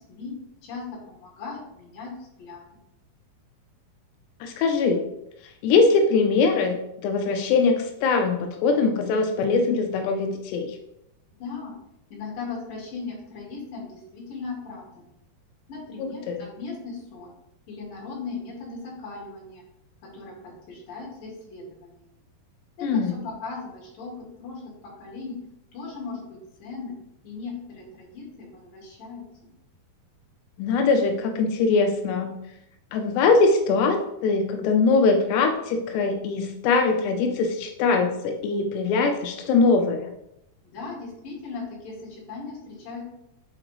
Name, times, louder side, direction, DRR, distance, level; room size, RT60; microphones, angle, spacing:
voice 1, 0.6-2.7 11.4-11.7 12.1-15.1 15.7-17.3 17.7-19.6 20.1-22.0 22.8-24.6 25.0-25.4 25.7-27.0 27.2-29.2 40.7-43.0, left 4 dB, 60° left, -3 dB, 3.7 m, -38 dB
voice 2, 4.4-5.0 5.4-10.8 16.0-16.4 22.8-23.1 30.6-32.4 32.9-40.1, left 4 dB, 90° left, 4 dB, 2.8 m, -22 dB
7.5 x 3.8 x 4.9 m, 0.84 s
omnidirectional pair, 4.7 m